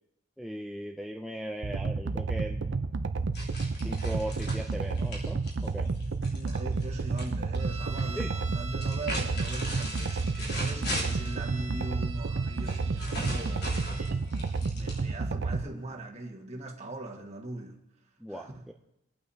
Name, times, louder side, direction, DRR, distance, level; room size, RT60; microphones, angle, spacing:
voice 1, 0.4-2.8 3.8-5.9 8.2-8.3 18.2-18.7, right 1 dB, ahead, 1 dB, 0.4 m, -38 dB
sound 1, 1.6-15.6, right 4 dB, 60° right, 0.5 m, -31 dB
sound 2, 3.3-7.3 7.5-8.2 8.7-11.4 12.6-15.3, equal, 50° left, 3.1 m, -38 dB
voice 2, 6.3-14.3 14.7-17.8 18.3-18.6, right 2 dB, 30° right, 0 dB, 1.6 m, -40 dB
sound 3, 7.6-14.2, right 4 dB, 75° right, 0.8 m, -45 dB
25.5 x 8.7 x 2.8 m, 0.89 s
head